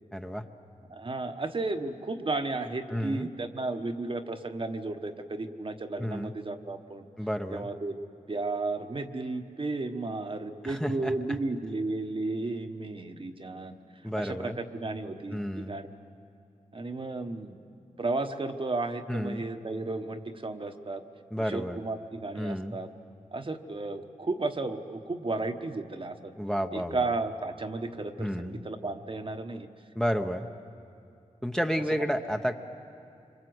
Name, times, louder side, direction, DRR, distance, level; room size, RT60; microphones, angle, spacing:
voice 1, 0.1-0.4 2.9-3.3 6.0-6.3 7.2-7.7 10.6-11.1 14.0-14.6 15.3-15.8 19.1-19.4 21.3-21.8 22.4-22.8 26.4-27.1 28.2-28.6 29.9-30.5 31.4-32.5, equal, 5° left, 4 dB, 0.9 m, -31 dB
voice 2, 0.9-7.1 7.5-8.0 8.3-13.8 14.2-15.9 16.7-17.6 18.0-21.0 21.4-22.9 23.3-26.3 26.7-29.7 32.0-32.1, right 3 dB, 40° right, 6 dB, 1.2 m, -33 dB
26.0 x 24.5 x 8.0 m, 2.6 s
wide cardioid pair, 90°, 14 cm